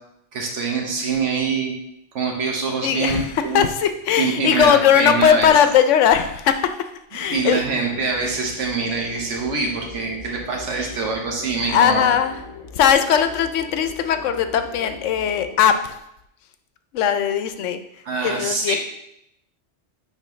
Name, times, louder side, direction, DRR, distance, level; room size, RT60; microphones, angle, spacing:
voice 1, 0.3-1.7 2.1-3.7 4.2-5.5 7.3-12.2 18.0-18.8, right 4 dB, 80° right, 1 dB, 1.4 m, -24 dB
voice 2, 2.8-6.9 7.1-7.6 11.7-12.4 12.8-16.0 16.9-17.8 18.2-18.8, left 8 dB, 90° left, 9 dB, 0.9 m, -19 dB
sound 1, 7.3-15.6, left 5 dB, 40° left, 0.5 m, -40 dB
9.2 x 3.6 x 3.1 m, 0.79 s
omnidirectional pair, 1.2 m